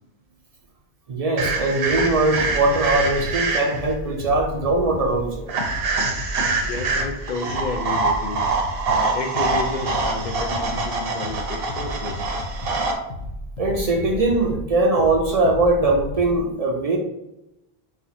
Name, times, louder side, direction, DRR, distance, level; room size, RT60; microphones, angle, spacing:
voice 1, 1.1-5.4 13.6-17.0, right 2 dB, 50° right, 1 dB, 0.5 m, -21 dB
sound 1, 1.4-16.4, left 1 dB, 85° left, 0.9 m, -34 dB
sound 2, 1.4-3.9 5.5-12.9, right 3 dB, 70° right, 0.8 m, -25 dB
voice 2, 6.6-8.4 8.9-12.3, left 3 dB, 55° left, 4 dB, 0.6 m, -31 dB
4.4 x 2.3 x 2.6 m, 0.87 s
omnidirectional pair, 1.0 m